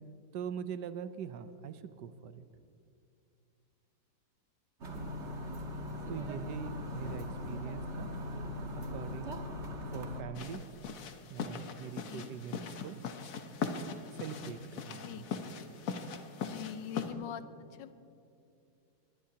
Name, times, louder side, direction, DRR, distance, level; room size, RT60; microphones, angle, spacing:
voice 1, 0.3-2.4 6.1-8.1 8.7-9.5 9.9-10.6 11.3-13.0 14.2-15.3, right 8 dB, 75° right, 11 dB, 1.3 m, -43 dB
sound 1, 4.8-10.2, left 1 dB, 40° right, 1.5 m, -40 dB
sound 2, 10.3-17.1, left 5 dB, 55° left, 1.2 m, -40 dB
voice 2, 16.4-17.9, left 10 dB, 85° left, 12 dB, 1.4 m, -43 dB
20.5 x 19.5 x 2.8 m, 2.6 s
omnidirectional pair, 1.9 m